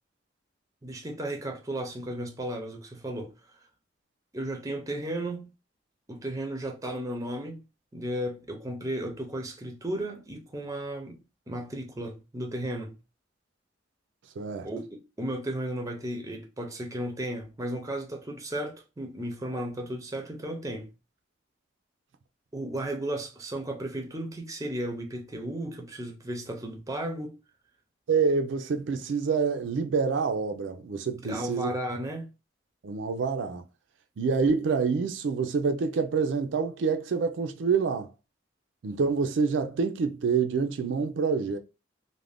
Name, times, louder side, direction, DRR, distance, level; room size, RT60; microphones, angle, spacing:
voice 1, 0.8-3.3 4.3-5.5 6.1-7.6 7.9-11.2 11.5-12.9 14.6-20.9 22.5-27.4 31.2-32.3, right 1 dB, 20° right, 0.5 m, -34 dB
voice 2, 14.4-14.7 28.1-31.7 32.8-33.6 34.2-38.1 38.8-41.6, right 5 dB, 70° right, 0.4 m, -27 dB
2.5 x 2.1 x 3.3 m
head